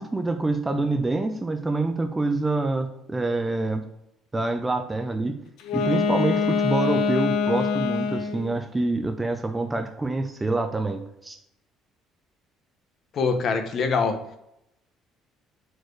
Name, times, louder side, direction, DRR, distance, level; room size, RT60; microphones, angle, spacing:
voice 1, 0.0-3.8 4.3-5.4 5.7-11.4, right 2 dB, 10° right, 7 dB, 0.4 m, -26 dB
Wind instrument woodwind instrument, 5.6-8.5, left 5 dB, 70° left, 0.7 m, -24 dB
voice 2, 13.1-14.2, left 5 dB, 40° left, 7 dB, 0.7 m, -24 dB
4.6 x 4.6 x 4.5 m, 0.82 s
cardioid pair, 170°, 0 cm